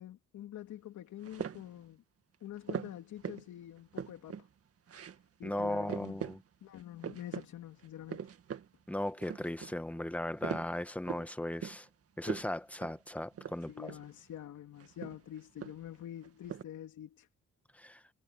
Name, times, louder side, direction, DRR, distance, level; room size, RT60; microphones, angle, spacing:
voice 1, 0.0-2.0 2.4-4.5 5.4-6.2 6.6-8.3 13.7-17.3, left 11 dB, 75° left, 2.9 m, -46 dB
sound 1, 1.2-1.8 2.7-3.5 3.8-4.5 4.9-5.2 5.5-5.6 5.9-6.4 6.7-7.5 7.8-8.7 9.0-9.7 10.1-11.3 11.6-11.9 12.2-12.5 12.8-13.0 13.3-14.1 14.8-16.0 16.2-16.6, right 8 dB, 50° right, 1.9 m, -41 dB
voice 2, 5.4-6.4 8.9-11.9 12.2-13.9 17.7-18.0, left 1 dB, 5° left, 1.5 m, -37 dB
cardioid pair, 90°, 30 cm